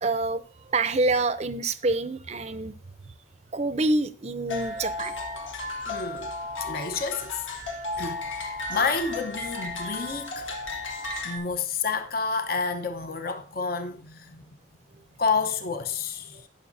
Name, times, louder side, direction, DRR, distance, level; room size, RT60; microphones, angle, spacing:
voice 1, 0.0-2.7 3.5-5.2 9.8-9.9, right 2 dB, 35° right, 0.6 m, -27 dB
sound 1, 4.5-11.4, left 2 dB, 85° left, 2.1 m, -34 dB
voice 2, 5.8-6.3 6.6-7.4 8.0-10.5 11.2-14.6 15.2-16.5, left 4 dB, 50° left, 0.9 m, -29 dB
16.0 x 6.2 x 2.7 m
head